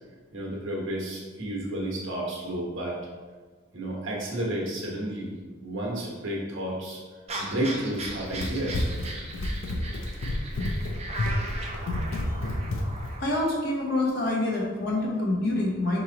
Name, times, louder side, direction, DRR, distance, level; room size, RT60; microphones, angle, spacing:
voice 1, 0.3-3.0 3.7-7.0 7.4-8.8, right 1 dB, 65° right, -3 dB, 1.1 m, -31 dB
sound 1, 7.3-13.3, right 2 dB, 30° right, 0.5 m, -38 dB
Run, 7.9-13.2, left 1 dB, 75° left, 0.5 m, -30 dB
voice 2, 13.2-16.0, left 2 dB, 50° left, -2 dB, 1.0 m, -26 dB
4.5 x 3.0 x 3.8 m, 1.4 s
head